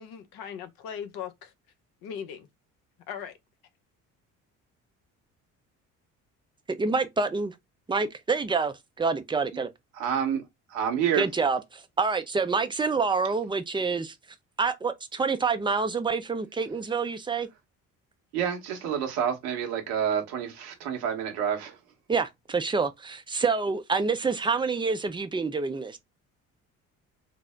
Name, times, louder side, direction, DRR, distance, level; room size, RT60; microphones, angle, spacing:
voice 1, 0.0-1.5 2.0-2.5 3.1-3.3, left 8 dB, 65° left, 0.8 m, -38 dB
voice 2, 6.8-7.5 7.9-9.7 11.1-14.1 14.6-17.5 22.1-26.0, right 4 dB, 10° right, 0.5 m, -27 dB
voice 3, 9.9-10.4 10.7-11.3 18.3-21.8, right 8 dB, 70° right, 1.0 m, -28 dB
3.9 x 2.0 x 3.4 m
hypercardioid pair, 50°, 40 cm